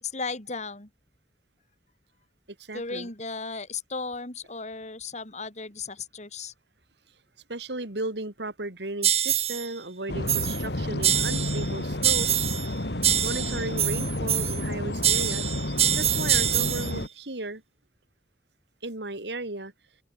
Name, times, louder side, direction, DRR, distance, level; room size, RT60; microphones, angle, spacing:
voice 1, 0.0-0.9 2.7-6.5 13.3-13.5, left 4 dB, 40° left, 3.3 m, -35 dB
voice 2, 2.6-3.1 7.5-12.5 13.2-15.5 16.0-17.6 18.8-19.7, right 2 dB, 65° right, 2.7 m, -35 dB
sound 1, 9.0-9.7 10.3-10.7 11.0-11.7 12.0-12.7 13.0-14.7 15.0-16.9, right 10 dB, 35° right, 3.2 m, -25 dB
sound 2, 10.1-17.1, left 1 dB, 65° left, 2.7 m, -30 dB
open air
head